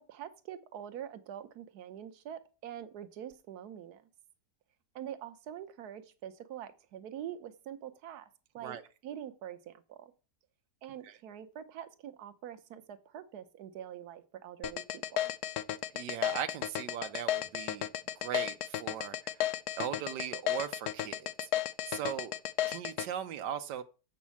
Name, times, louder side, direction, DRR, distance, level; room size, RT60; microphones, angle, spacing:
voice 1, 0.0-4.0 4.9-8.3 8.5-8.8 9.0-10.1 10.8-15.3, right 10 dB, 70° right, 1.4 m, -45 dB
sound 1, 14.6-23.1, left 12 dB, 75° left, 1.1 m, -33 dB
voice 2, 15.9-17.9 18.2-19.5 19.8-21.5 21.9-22.3 22.7-23.8, right 9 dB, 90° right, 1.3 m, -39 dB
7.3 x 5.4 x 7.1 m
omnidirectional pair, 1.8 m